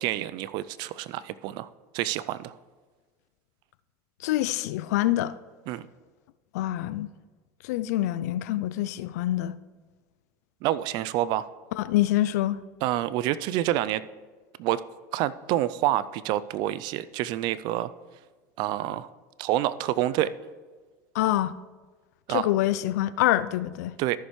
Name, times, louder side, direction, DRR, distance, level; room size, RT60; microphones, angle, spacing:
voice 1, 0.0-1.7 1.9-2.5 5.7-5.8 10.6-11.5 12.8-14.0 14.6-14.8 15.1-17.9 18.6-19.1 19.4-20.3 22.3-22.5 24.0-24.2, right 14 dB, 60° right, 0.4 m, -27 dB
voice 2, 4.2-5.3 6.5-7.1 7.6-9.6 11.8-12.6 21.1-21.5 22.3-23.9, left 14 dB, 75° left, 0.4 m, -25 dB
14.0 x 6.5 x 3.1 m
hypercardioid pair, 95°, 9 cm